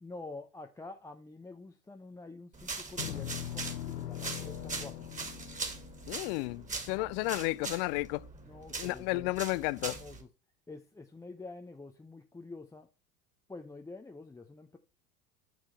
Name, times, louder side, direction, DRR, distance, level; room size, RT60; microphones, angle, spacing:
voice 1, 0.0-5.1 7.0-7.1 8.4-9.4 9.8-10.3 10.7-12.9 13.5-14.8, left 3 dB, 5° left, 0.7 m, -47 dB
sound 1, 2.5-10.2, right 4 dB, 15° right, 2.4 m, -41 dB
sound 2, 3.0-7.4, left 12 dB, 80° left, 0.7 m, -42 dB
voice 2, 6.1-8.3 8.8-10.0, left 23 dB, 45° left, 0.4 m, -32 dB
9.0 x 6.3 x 3.2 m
hypercardioid pair, 85°, 46 cm